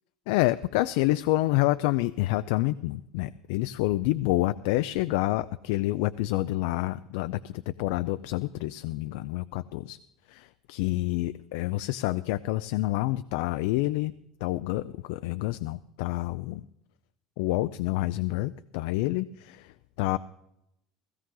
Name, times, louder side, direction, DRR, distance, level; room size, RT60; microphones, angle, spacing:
voice 1, 0.3-10.0 10.3-14.1 14.4-16.6 17.4-19.7 20.0-20.2, left 17 dB, 80° left, 13 dB, 0.4 m, -28 dB
16.5 x 15.5 x 3.8 m, 0.83 s
cardioid pair, 155°, 0 cm